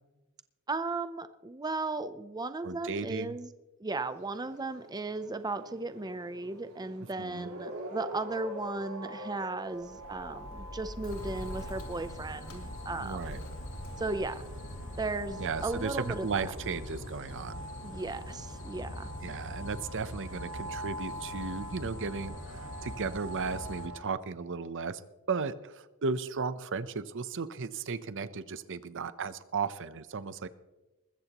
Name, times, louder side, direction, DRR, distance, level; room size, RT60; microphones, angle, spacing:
voice 1, 0.7-3.5 3.8-13.4 14.0-14.4 15.0-16.3 17.8-19.1, right 3 dB, 20° right, 11 dB, 0.6 m, -36 dB
voice 2, 2.6-3.4 7.2-7.5 13.0-13.4 15.4-17.6 19.2-25.0 25.3-30.5, right 5 dB, 60° right, 14 dB, 0.7 m, -35 dB
sound 1, 4.0-24.0, right 1 dB, 75° right, 4.3 m, -45 dB
Bird, 9.7-17.5, equal, 75° left, 3.2 m, -46 dB
sound 2, 11.1-23.9, left 1 dB, 60° left, 1.7 m, -43 dB
20.5 x 15.0 x 3.0 m, 1.1 s
head